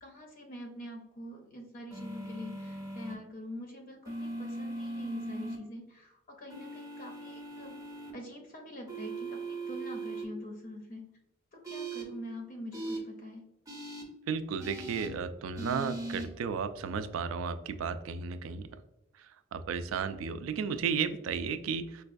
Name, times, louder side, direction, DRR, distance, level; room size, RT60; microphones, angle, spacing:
voice 1, 0.0-7.7 8.1-11.1 11.5-13.5, left 1 dB, 45° left, 2 dB, 0.5 m, -45 dB
sound 1, 1.9-3.1 4.0-5.6 6.5-8.1 8.9-10.2 11.6-12.0 12.7-13.0 13.7-14.0 14.6-15.1 15.6-16.2, right 2 dB, 15° right, 0.5 m, -39 dB
voice 2, 14.3-18.8 19.2-22.0, right 6 dB, 75° right, 12 dB, 0.3 m, -34 dB
4.6 x 2.2 x 2.5 m, 0.92 s
head